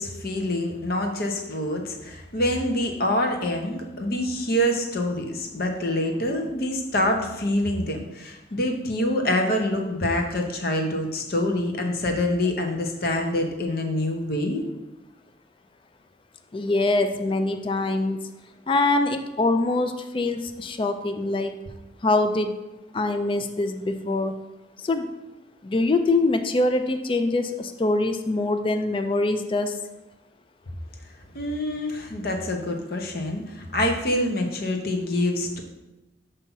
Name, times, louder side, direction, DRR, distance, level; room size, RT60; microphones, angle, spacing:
voice 1, 0.0-14.6 31.3-35.6, left 1 dB, 50° left, 3 dB, 0.8 m, -26 dB
voice 2, 16.5-18.2 18.7-21.5 22.0-22.5 22.9-24.3 24.8-25.1 25.6-29.8, left 2 dB, 25° left, 7 dB, 0.3 m, -24 dB
7.0 x 2.8 x 5.4 m, 1.0 s
head